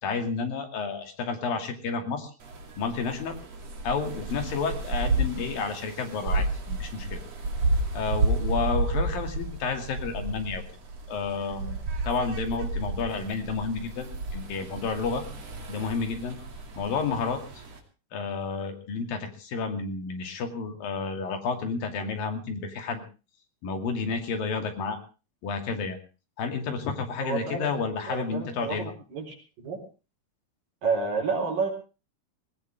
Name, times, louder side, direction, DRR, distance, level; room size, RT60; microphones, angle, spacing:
voice 1, 0.0-2.3 2.8-3.4 3.8-7.2 7.9-10.6 11.1-11.8 12.0-15.2 15.7-16.4 16.8-17.6 18.1-23.0 23.6-25.0 25.4-26.0 26.4-28.9, left 5 dB, 65° left, 5 dB, 4.3 m, -31 dB
sound 1, 2.4-17.8, right 2 dB, 45° right, 3.9 m, -31 dB
voice 2, 27.2-27.7 28.1-29.8 30.8-31.7, right 4 dB, 60° right, 2 dB, 5.9 m, -30 dB
19.5 x 19.0 x 3.6 m, 0.34 s
omnidirectional pair, 4.4 m